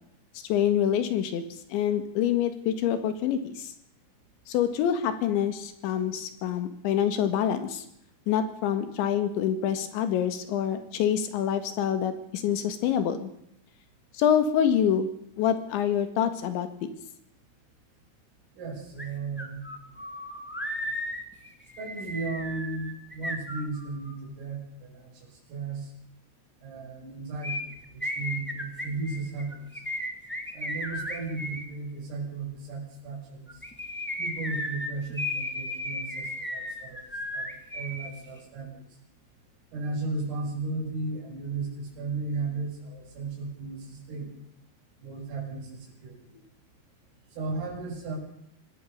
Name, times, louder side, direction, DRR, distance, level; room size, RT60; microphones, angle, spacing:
voice 1, 0.5-1.4 1.7-3.7 4.5-7.9 8.3-13.3 14.1-15.1 15.4-16.7, left 9 dB, 70° left, 10 dB, 3.9 m, -26 dB
voice 2, 18.6-19.6 21.8-25.9 26.6-29.7 30.5-33.5 34.2-37.0 37.3-38.8 39.7-44.3 45.0-46.4 47.4-48.2, right 3 dB, 80° right, -1 dB, 8.9 m, -35 dB
sound 1, 19.0-19.1 19.4-24.1 27.4-31.6 33.5-38.1 38.4-38.5, left 1 dB, 5° left, 1.0 m, -35 dB
25.0 x 18.0 x 6.7 m, 0.76 s
omnidirectional pair, 5.8 m